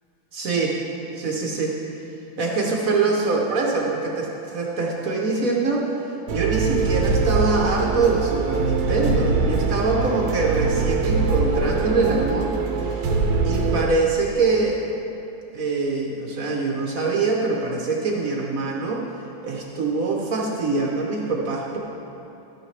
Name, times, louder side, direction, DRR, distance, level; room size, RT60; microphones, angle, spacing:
voice 1, 0.3-0.8 1.1-1.8 2.4-5.9 6.3-12.5 12.8-13.1 13.4-14.8 15.5-19.0 19.4-21.8, right 3 dB, 55° right, -1 dB, 1.0 m, -24 dB
sound 1, 6.3-13.8, right 4 dB, 90° right, 1.7 m, -23 dB
12.0 x 9.4 x 3.3 m, 2.9 s
omnidirectional pair, 2.3 m